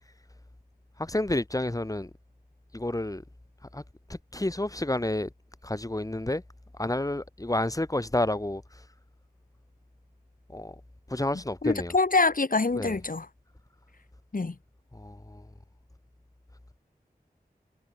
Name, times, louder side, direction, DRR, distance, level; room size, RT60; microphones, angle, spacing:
voice 1, 1.0-2.1 2.7-3.2 3.7-3.8 4.1-5.3 5.6-6.4 6.8-8.6 10.5-10.8 11.1-11.9 12.7-13.0 14.9-15.5, left 1 dB, 20° left, 3.0 m, -30 dB
voice 2, 11.6-13.3 14.3-14.5, left 3 dB, 55° left, 4.7 m, -25 dB
wide cardioid pair, 75°, 16 cm